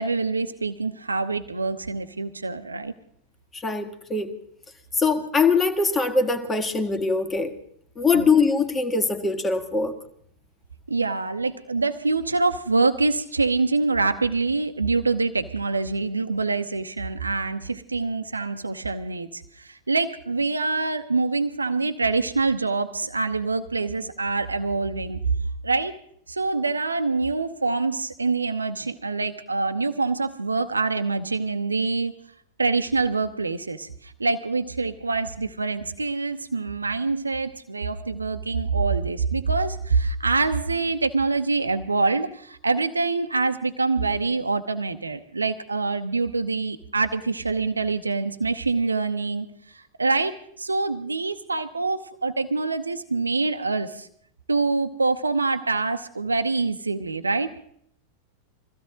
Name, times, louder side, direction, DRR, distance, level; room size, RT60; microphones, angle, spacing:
voice 1, 0.0-2.9 8.1-8.3 10.9-25.2 25.6-26.0 26.3-32.1 32.6-49.5 50.0-54.1 54.5-57.5, right 3 dB, 80° right, 8 dB, 0.8 m, -25 dB
voice 2, 3.5-4.3 4.9-7.6 8.0-9.9, left 4 dB, 15° left, 8 dB, 1.9 m, -22 dB
22.5 x 15.5 x 3.8 m, 0.65 s
figure-of-eight pair, 90°, 0 cm